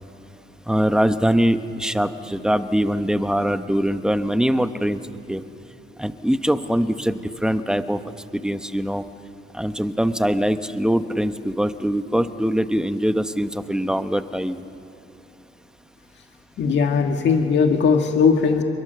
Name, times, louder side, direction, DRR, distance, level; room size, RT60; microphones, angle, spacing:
voice 1, 0.7-5.0 5.3-5.4 6.0-8.0 8.3-9.0 9.5-14.6, equal, 5° right, 9 dB, 1.2 m, -22 dB
voice 2, 16.6-18.6, left 5 dB, 65° left, 3 dB, 1.8 m, -18 dB
27.0 x 22.0 x 6.9 m, 3.0 s
cardioid pair, 90°, 20 cm